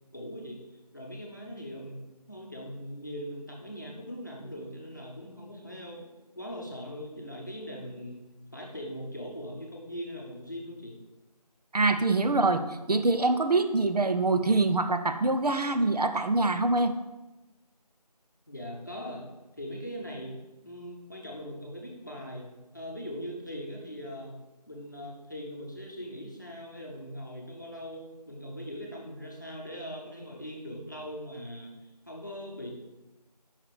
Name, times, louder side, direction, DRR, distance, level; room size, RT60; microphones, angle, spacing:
voice 1, 0.1-0.6 0.9-2.0 2.3-6.1 6.3-8.2 8.5-11.0 18.5-19.2 19.5-20.4 20.6-24.4 24.7-32.7, equal, 30° left, -2 dB, 0.9 m, -40 dB
voice 2, 11.7-16.9, right 2 dB, 70° right, 9 dB, 0.6 m, -25 dB
5.7 x 5.0 x 4.9 m, 1.1 s
figure-of-eight pair, 175°, 21 cm